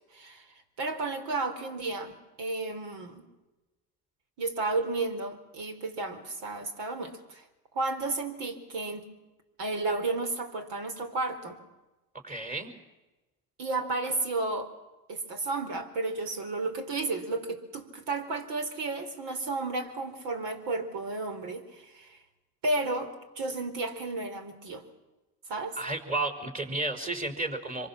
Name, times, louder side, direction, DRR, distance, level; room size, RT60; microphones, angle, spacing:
voice 1, 0.1-3.2 4.4-7.4 7.7-9.1 9.6-11.6 13.6-14.7 15.1-22.2 22.6-24.8 25.5-25.8, right 3 dB, 60° right, 8 dB, 4.4 m, -32 dB
voice 2, 12.2-12.7 25.8-27.9, right 2 dB, 15° right, 7 dB, 5.3 m, -32 dB
25.5 x 24.0 x 7.5 m, 1.1 s
hypercardioid pair, 80°, 48 cm